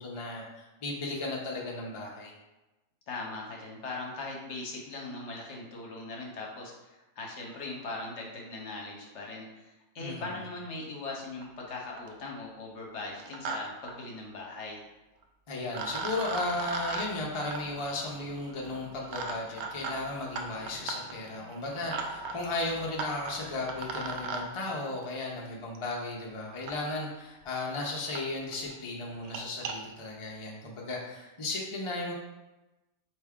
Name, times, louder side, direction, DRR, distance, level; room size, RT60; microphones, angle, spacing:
voice 1, 0.0-2.3 10.0-10.4 15.5-32.1, left 2 dB, 35° left, -2 dB, 0.5 m, -35 dB
voice 2, 3.1-14.8, left 3 dB, 60° left, -1 dB, 1.0 m, -40 dB
sound 1, 11.4-11.5 11.8-12.2 13.0-13.6 13.8-13.9 15.2-15.3 15.7-24.4 25.8-25.9 26.7-26.8 27.4-27.5 27.7-27.8 28.2-28.3 28.5-28.7 29.1-29.7, right 4 dB, 65° right, 0.7 m, -38 dB
4.6 x 2.7 x 3.5 m, 1.0 s
omnidirectional pair, 1.4 m